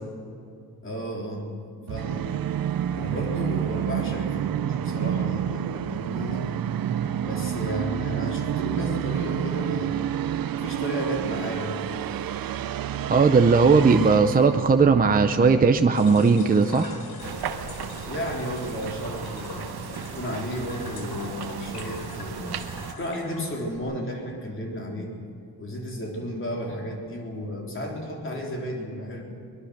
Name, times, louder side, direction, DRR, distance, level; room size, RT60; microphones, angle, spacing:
voice 1, 0.8-1.5 1.9-2.3 2.9-6.5 7.2-10.0 10.5-11.8 18.0-19.6 20.1-22.6 22.9-25.1 25.6-29.2, equal, 35° left, 0 dB, 3.7 m, -33 dB
Musical instrument, 1.9-15.6, right 10 dB, 65° right, 0.7 m, -29 dB
voice 2, 13.1-17.0, right 4 dB, 25° right, 7 dB, 0.6 m, -18 dB
sound 1, 15.9-23.8, left 3 dB, 75° left, 4.2 m, -42 dB
sound 2, 17.2-22.9, right 7 dB, 80° right, 1.3 m, -36 dB
23.5 x 21.0 x 6.5 m, 2.5 s
wide cardioid pair, 180°, 37 cm